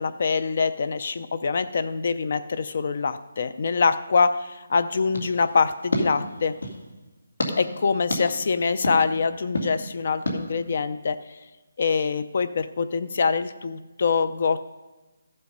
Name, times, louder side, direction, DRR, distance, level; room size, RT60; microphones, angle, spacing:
voice 1, 0.0-6.5 7.6-11.2 11.8-14.7, left 5 dB, 35° left, 13 dB, 0.4 m, -24 dB
sound 1, 5.1-6.8 7.4-7.5 8.1-8.2 8.8-9.0 9.5-9.7 10.3-10.4, left 1 dB, 85° left, 2.4 m, -29 dB
14.0 x 7.5 x 5.3 m, 1.2 s
hypercardioid pair, 180°, 0 cm